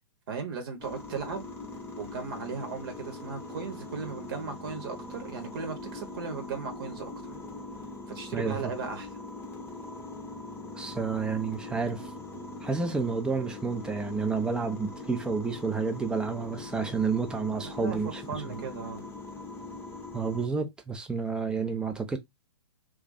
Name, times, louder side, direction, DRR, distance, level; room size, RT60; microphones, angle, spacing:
voice 1, 0.3-1.5 2.0-7.1 8.1-9.1 17.5-19.0, right 5 dB, 50° right, 1.0 m, -37 dB
sound 1, 0.8-20.5, left 2 dB, 15° left, 0.8 m, -41 dB
voice 2, 10.8-12.1 12.6-18.2 18.5-18.6 20.1-22.2, right 5 dB, 5° right, 0.4 m, -30 dB
2.5 x 2.3 x 4.0 m
figure-of-eight pair, 115°, 15 cm